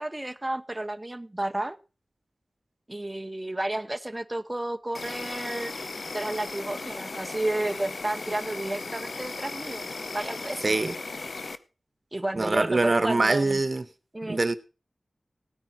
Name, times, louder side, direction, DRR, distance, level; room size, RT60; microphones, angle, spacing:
voice 1, 0.0-1.8 2.9-5.8 6.1-10.8 12.1-13.6 14.1-14.4, right 1 dB, 20° right, 0.9 m, -32 dB
Insect, 4.9-11.6, left 3 dB, 70° left, 0.8 m, -37 dB
voice 2, 10.6-10.9 12.3-13.8 14.2-14.6, right 3 dB, 50° right, 1.2 m, -24 dB
17.0 x 9.5 x 4.6 m
wide cardioid pair, 70°, 0 cm